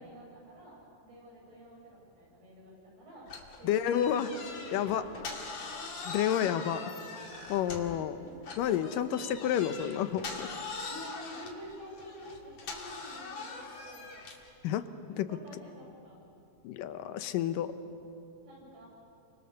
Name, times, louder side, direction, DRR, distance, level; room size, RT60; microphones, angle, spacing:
voice 1, 0.0-3.3 3.6-4.7 5.1-5.3 5.8-5.9 6.3-6.8 7.8-8.5 10.9-14.1 15.0-16.2 18.4-18.9, equal, 75° right, -3 dB, 9.1 m, -50 dB
sound 1, 3.3-8.0 8.4-14.5, left 4 dB, 45° left, 3.2 m, -42 dB
voice 2, 3.6-4.3 4.7-5.1 6.1-6.8 7.5-8.2 8.6-10.5 14.6-14.9 15.2-15.3 16.6-17.7, left 10 dB, 70° left, 10 dB, 2.3 m, -30 dB
30.0 x 24.5 x 6.9 m, 2.8 s
omnidirectional pair, 4.5 m